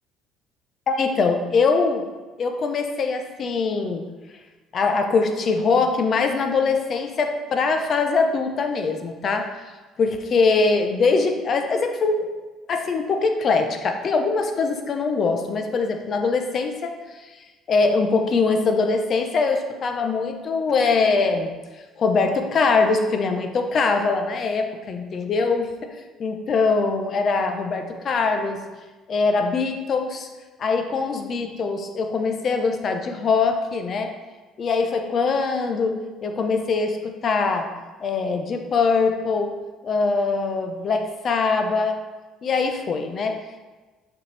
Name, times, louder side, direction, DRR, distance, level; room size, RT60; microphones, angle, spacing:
voice 1, 0.9-2.0 2.4-4.0 4.7-9.5 10.0-12.3 12.7-16.9 17.7-21.5 22.0-25.7 26.2-28.6 29.1-30.3 30.6-34.1 34.6-37.7 38.0-39.5 39.8-42.0 42.4-43.4, left 4 dB, 40° left, 5 dB, 0.7 m, -22 dB
6.7 x 4.3 x 3.3 m, 1.3 s
cardioid pair, 120°, 0 cm